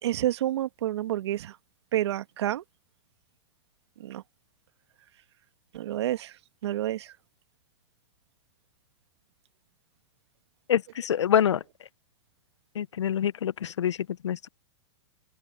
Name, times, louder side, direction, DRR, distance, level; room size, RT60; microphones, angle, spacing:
voice 1, 0.0-1.6 1.9-2.6 4.0-4.2 5.7-6.3 6.6-7.1, right 13 dB, 70° right, 1.9 m, -29 dB
voice 2, 10.7-11.6 12.8-14.0 14.2-14.5, left 9 dB, 90° left, 0.6 m, -25 dB
hypercardioid pair, 125°, 15 cm